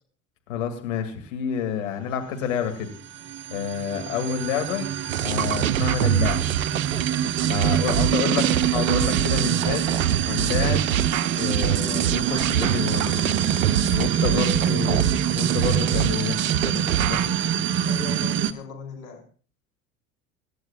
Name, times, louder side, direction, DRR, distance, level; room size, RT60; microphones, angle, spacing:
voice 1, 0.5-2.9 3.5-4.9 5.2-6.4 7.5-8.4 8.7-9.8 10.3-10.9 11.3-13.2 13.9-15.1 15.3-17.4, left 7 dB, 65° left, 4 dB, 2.4 m, -29 dB
sound 1, 2.8-18.5, right 9 dB, 30° right, 0.8 m, -25 dB
sound 2, 5.1-17.3, right 11 dB, 80° right, 0.5 m, -25 dB
voice 2, 7.8-8.5 14.3-15.2 17.8-19.2, left 4 dB, 45° left, 2 dB, 4.3 m, -37 dB
25.5 x 11.0 x 2.4 m, 0.41 s
figure-of-eight pair, 60°, 40 cm